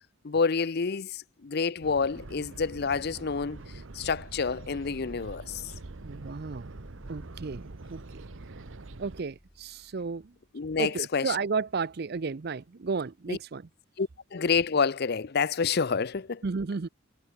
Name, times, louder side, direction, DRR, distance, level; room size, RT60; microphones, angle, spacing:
voice 1, 0.2-3.6 3.9-5.6 10.5-11.4 13.3-13.4 14.0-16.4, left 5 dB, 50° left, 0.6 m, -28 dB
sound 1, 1.8-9.2, right 2 dB, 75° right, 1.0 m, -45 dB
sound 2, 2.8-10.4, equal, 5° left, 2.4 m, -54 dB
voice 2, 6.0-6.7 7.1-8.2 9.0-10.3 10.8-13.7 16.4-16.9, right 4 dB, 50° right, 0.5 m, -33 dB
head